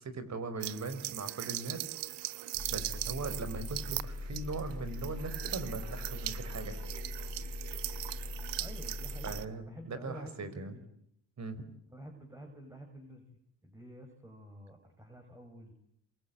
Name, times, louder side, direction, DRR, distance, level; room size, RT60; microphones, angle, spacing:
voice 1, 0.0-1.9 2.7-6.8 9.2-10.8 11.4-11.6, right 3 dB, 40° right, 12 dB, 5.5 m, -40 dB
sound 1, 0.6-9.4, right 16 dB, 70° right, 1.4 m, -40 dB
Engine, 2.5-9.4, left 2 dB, 10° left, 6.5 m, -41 dB
voice 2, 8.5-10.8 11.9-13.2 13.6-15.7, right 1 dB, 5° right, 4 dB, 6.1 m, -50 dB
27.5 x 24.0 x 8.9 m, 0.74 s
supercardioid pair, 80°, 44 cm